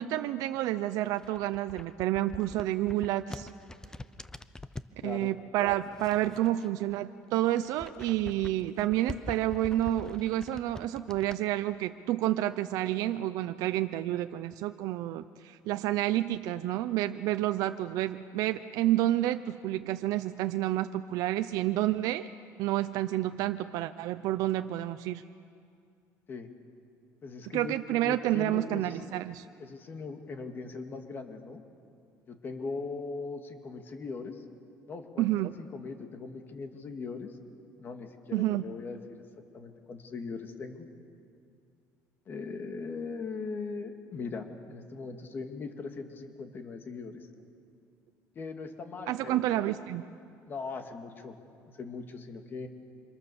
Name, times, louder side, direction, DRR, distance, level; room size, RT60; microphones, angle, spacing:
voice 1, 0.0-3.5 5.0-22.3 22.6-25.2 27.5-29.4 35.2-35.5 38.3-38.6 49.1-50.0, right 14 dB, 75° right, 9 dB, 0.7 m, -29 dB
sound 1, 1.1-5.0 5.7-7.0 7.3-11.4, left 2 dB, 10° left, 0.7 m, -45 dB
voice 2, 5.0-5.3 26.3-26.5 27.2-27.8 28.0-29.1 29.6-31.6 32.3-34.4 34.9-37.4 37.8-39.2 39.5-40.9 42.3-47.3 48.4-49.6 50.5-51.4 51.8-52.7, left 4 dB, 35° left, 5 dB, 2.3 m, -40 dB
29.0 x 26.5 x 7.1 m, 2.4 s
cardioid pair, 140°, 6 cm